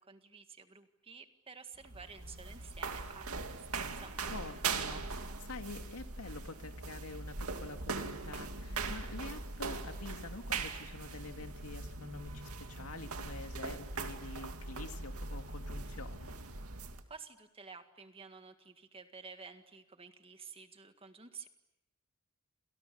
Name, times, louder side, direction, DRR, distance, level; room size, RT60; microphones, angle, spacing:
voice 1, 0.0-4.1 17.1-21.5, right 5 dB, 25° right, 7 dB, 1.9 m, -52 dB
sound 1, 1.7-17.0, right 4 dB, 85° right, 2.4 m, -41 dB
voice 2, 4.3-16.4, left 3 dB, 90° left, 6 dB, 2.3 m, -47 dB
29.5 x 28.0 x 7.0 m, 0.86 s
head